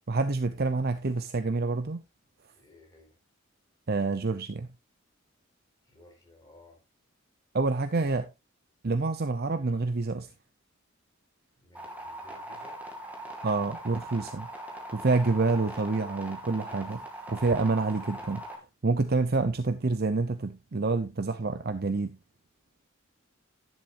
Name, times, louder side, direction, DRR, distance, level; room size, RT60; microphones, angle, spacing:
voice 1, 0.1-2.0 3.9-4.7 7.5-8.3 8.8-10.3 13.4-14.5 14.9-18.5 18.8-22.2, right 3 dB, 50° right, 0.7 m, -27 dB
voice 2, 2.6-3.1 5.9-6.8 11.6-12.8, left 2 dB, 20° left, 4.8 m, -56 dB
sound 1, 11.7-18.6, right 1 dB, 10° right, 2.5 m, -41 dB
11.0 x 10.5 x 2.6 m
head